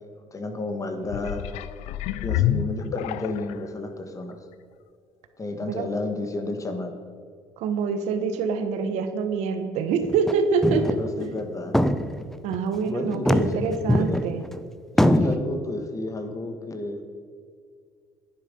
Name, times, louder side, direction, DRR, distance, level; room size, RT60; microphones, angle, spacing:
voice 1, 0.3-1.4 2.2-4.4 5.4-6.9 10.7-11.7 12.8-13.5 14.0-14.2 15.0-17.0, left 2 dB, 30° left, 6 dB, 1.8 m, -31 dB
sound 1, 1.0-3.7 4.3-4.4, left 11 dB, 85° left, 0.5 m, -28 dB
voice 2, 2.3-2.8 5.7-5.9 7.6-10.8 12.4-14.4, right 5 dB, 80° right, 8 dB, 1.3 m, -26 dB
sound 2, 10.0-10.3 10.6-11.1 11.4-11.5 11.7-12.6 13.1-14.6 15.0-15.4, left 1 dB, 5° left, 0.7 m, -22 dB
10.5 x 10.0 x 5.4 m, 2.1 s
supercardioid pair, 90°, 11 cm